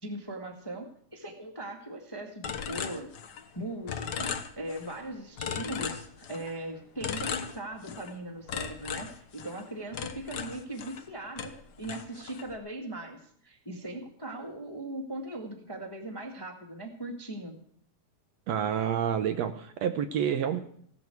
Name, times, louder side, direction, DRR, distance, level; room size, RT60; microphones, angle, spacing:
voice 1, 0.0-3.1 3.5-17.6, right 1 dB, 10° left, 3 dB, 1.2 m, -39 dB
sound 1, 2.4-3.6 3.9-5.0 5.4-6.6 7.0-8.1 8.5-11.1 11.4-12.5, left 7 dB, 85° left, 0.9 m, -37 dB
voice 2, 18.5-20.6, right 8 dB, 70° right, 8 dB, 1.9 m, -28 dB
16.0 x 12.5 x 4.6 m, 0.62 s
omnidirectional pair, 3.5 m